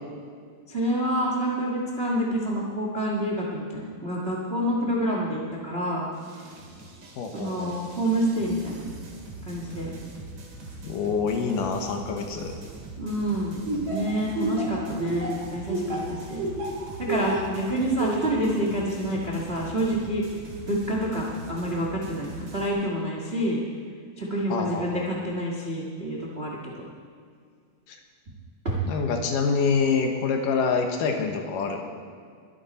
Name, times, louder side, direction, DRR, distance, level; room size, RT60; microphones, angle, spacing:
voice 1, 0.7-6.1 7.3-8.8 9.4-9.9 13.0-16.5 17.0-20.2 20.7-23.6 24.2-26.8 28.6-28.8, right 1 dB, 80° right, -2 dB, 0.5 m, -28 dB
sound 1, 6.1-22.7, right 2 dB, 50° right, 2.8 m, -42 dB
voice 2, 7.2-7.8 10.8-12.5 24.5-25.1 27.9-28.0 28.9-31.9, left 5 dB, 70° left, 3 dB, 2.5 m, -26 dB
Laughter, 13.7-17.5 18.0-18.4, right 2 dB, 35° right, 3.2 m, -29 dB
22.0 x 9.7 x 4.2 m, 2.1 s
omnidirectional pair, 4.3 m